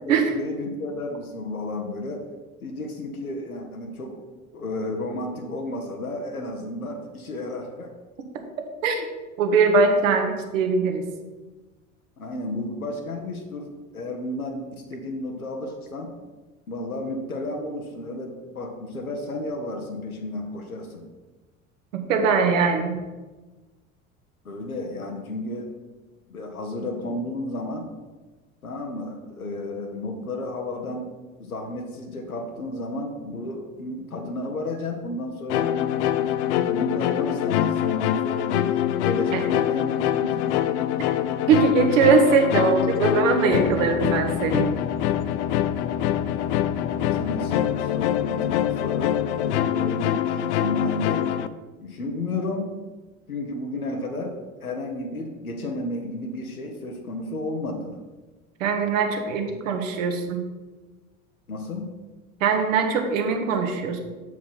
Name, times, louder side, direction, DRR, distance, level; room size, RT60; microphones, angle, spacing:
voice 1, 0.0-2.2 2.6-4.2 4.5-7.9 12.2-16.1 16.7-21.1 24.4-25.7 26.3-27.9 28.6-31.1 31.4-35.8 36.7-40.6 46.7-51.3 51.8-52.8 53.3-58.0 61.5-61.9, left 2 dB, 85° left, 2 dB, 0.9 m, -32 dB
voice 2, 9.4-11.0 22.1-22.9 39.3-39.4 41.5-44.7 58.6-60.4 62.4-64.0, right 5 dB, 65° right, 4 dB, 1.2 m, -21 dB
sound 1, 35.5-51.5, left 11 dB, 55° left, 0.5 m, -24 dB
7.1 x 4.6 x 5.4 m, 1.2 s
figure-of-eight pair, 65°, 42 cm